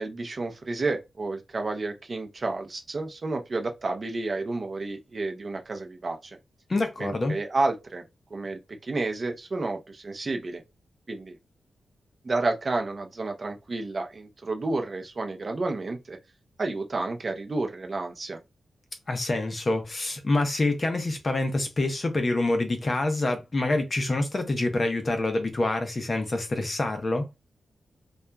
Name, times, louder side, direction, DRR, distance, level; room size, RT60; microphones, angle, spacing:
voice 1, 0.0-6.4 7.0-8.0 8.3-10.6 11.1-11.4 12.2-16.2 16.6-18.4, right 3 dB, 30° right, 0.5 m, -30 dB
voice 2, 6.7-7.4 19.1-27.3, left 2 dB, 25° left, 0.5 m, -26 dB
2.8 x 2.2 x 2.2 m
wide cardioid pair, 170°, 0 cm